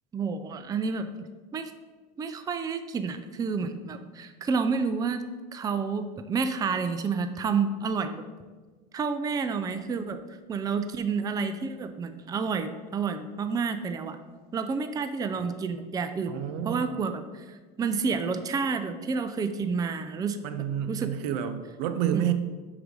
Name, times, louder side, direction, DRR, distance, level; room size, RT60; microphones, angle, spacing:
voice 1, 0.1-1.1 1.5-1.7 2.2-5.3 5.5-8.2 8.9-10.2 10.5-14.2 14.5-17.4 17.8-20.4 20.9-21.1 22.1-22.3, right 5 dB, 20° right, 9 dB, 0.4 m, -29 dB
voice 2, 16.3-16.8 20.4-22.3, right 10 dB, 75° right, 10 dB, 0.7 m, -29 dB
6.0 x 4.9 x 5.2 m, 1.4 s
supercardioid pair, 115°, 21 cm